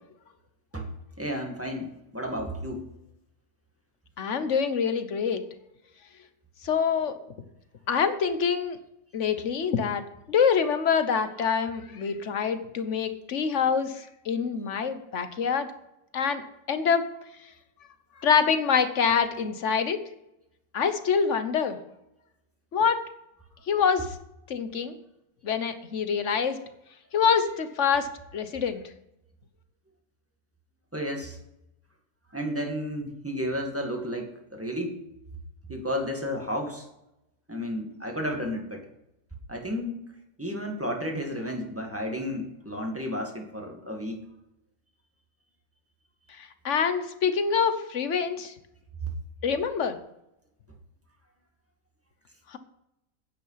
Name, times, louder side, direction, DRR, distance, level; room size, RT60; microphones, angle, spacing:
voice 1, 1.2-2.8 30.9-31.4 32.3-35.0 35.7-36.9 37.5-38.9 39.5-40.1 40.4-44.2, equal, 10° right, 1 dB, 1.9 m, -32 dB
voice 2, 4.2-5.4 6.6-7.2 7.9-8.8 9.1-10.0 10.3-15.7 16.1-17.1 18.2-20.0 20.7-21.8 22.7-23.0 23.7-24.1 24.5-25.0 25.4-26.6 27.1-28.8 46.4-48.5 49.4-50.0 52.5-52.6, left 6 dB, 55° left, 10 dB, 1.3 m, -25 dB
9.7 x 9.3 x 5.7 m, 0.86 s
omnidirectional pair, 1.5 m